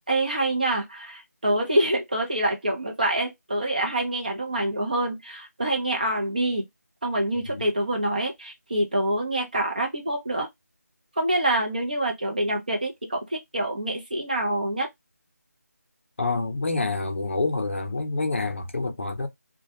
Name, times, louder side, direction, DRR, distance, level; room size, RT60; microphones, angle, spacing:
voice 1, 0.1-6.6 7.0-10.5 11.2-14.9, right 1 dB, 30° right, 0.6 m, -26 dB
voice 2, 16.2-19.3, left 3 dB, 45° left, 0.5 m, -27 dB
2.2 x 2.1 x 2.7 m
figure-of-eight pair, 175°, 9 cm